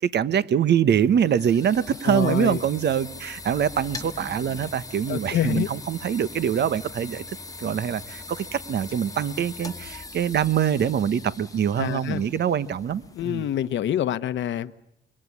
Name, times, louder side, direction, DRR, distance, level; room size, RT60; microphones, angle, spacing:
voice 1, 0.0-7.2 7.6-13.4, right 8 dB, 60° right, 1.2 m, -24 dB
sound 1, 0.9-13.7, left 3 dB, 15° left, 1.4 m, -41 dB
voice 2, 2.0-2.6 5.1-5.7 11.8-12.3 13.1-14.7, left 10 dB, 70° left, 1.1 m, -26 dB
25.5 x 23.5 x 9.8 m
cardioid pair, 90°, 20 cm